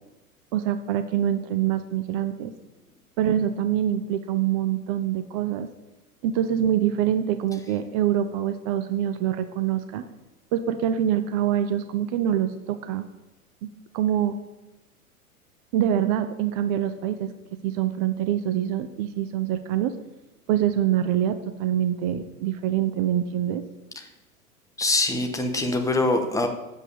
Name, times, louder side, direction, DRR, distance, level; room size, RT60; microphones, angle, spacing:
voice 1, 0.5-2.5 3.2-5.7 6.2-10.0 10.5-13.0 13.6-13.7 13.9-14.4 15.7-17.3 17.6-19.9 20.5-23.6, right 10 dB, 25° right, 9 dB, 0.4 m, -25 dB
voice 2, 24.8-26.5, left 2 dB, 5° left, 4 dB, 1.0 m, -24 dB
8.2 x 7.2 x 6.9 m, 1.0 s
figure-of-eight pair, 95°, 44 cm